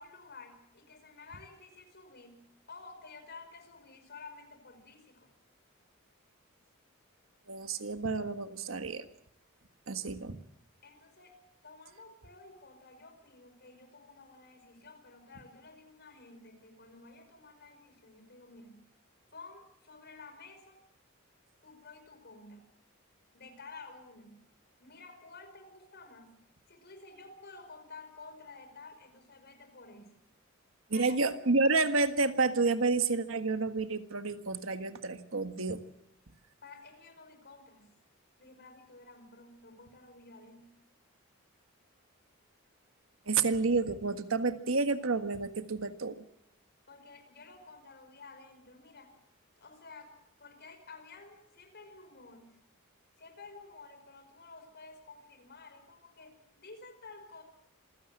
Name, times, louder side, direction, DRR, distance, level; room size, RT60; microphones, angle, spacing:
voice 1, 0.0-2.4 2.7-5.3 10.8-18.8 19.3-20.8 21.6-22.7 23.3-24.4 24.8-26.3 26.7-30.2 30.9-31.2 36.6-37.9 38.4-40.7 46.9-49.1 49.6-52.6 53.2-57.4, left 3 dB, 50° left, 7 dB, 5.2 m, -52 dB
voice 2, 7.5-9.0 9.9-10.4 30.9-35.8 43.3-46.2, right 3 dB, 70° right, 9 dB, 1.6 m, -30 dB
27.0 x 16.0 x 7.7 m, 0.76 s
head